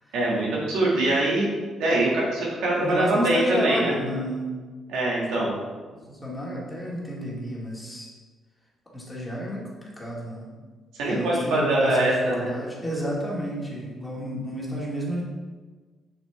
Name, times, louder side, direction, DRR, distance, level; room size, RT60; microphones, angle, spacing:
voice 1, 0.1-1.5 1.8-3.9 4.9-5.5 11.0-12.5, right 1 dB, 90° right, -4 dB, 2.0 m, -23 dB
voice 2, 2.8-4.4 5.4-5.5 6.1-8.1 8.9-10.5 11.1-15.2, equal, 15° left, -4 dB, 2.0 m, -31 dB
6.4 x 6.0 x 3.4 m, 1.4 s
cardioid pair, 90°, 0 cm